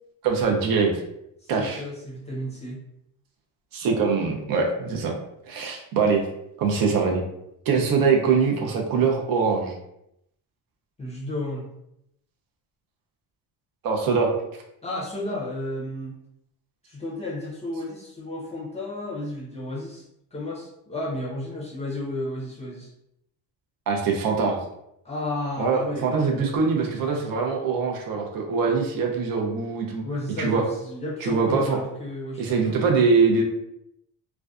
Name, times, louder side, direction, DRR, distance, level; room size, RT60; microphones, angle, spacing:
voice 1, 0.2-0.9 1.5-1.8 3.7-5.2 5.5-6.3 6.6-7.2 7.7-9.7 13.8-14.3 23.9-24.6 25.6-30.0 30.4-30.6 31.2-31.8 32.4-33.4, right 5 dB, 55° right, 1 dB, 0.5 m, -23 dB
voice 2, 1.4-2.8 11.0-11.7 14.8-16.2 16.8-20.0 20.3-22.9 25.0-26.5 30.0-32.8, left 1 dB, 15° left, -5 dB, 0.5 m, -33 dB
2.5 x 2.2 x 2.3 m, 0.80 s
cardioid pair, 140°, 42 cm